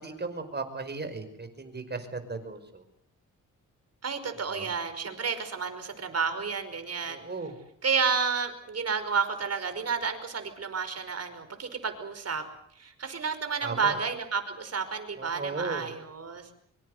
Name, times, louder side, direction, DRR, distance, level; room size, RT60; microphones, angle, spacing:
voice 1, 0.0-2.8 4.5-4.7 7.1-7.6 13.6-14.0 15.2-15.9, right 3 dB, 30° right, 9 dB, 5.4 m, -36 dB
voice 2, 4.0-7.2 7.8-12.4 12.8-16.5, right 5 dB, 50° right, 8 dB, 5.3 m, -31 dB
25.0 x 24.0 x 8.1 m, 0.64 s
cardioid pair, 90°, 32 cm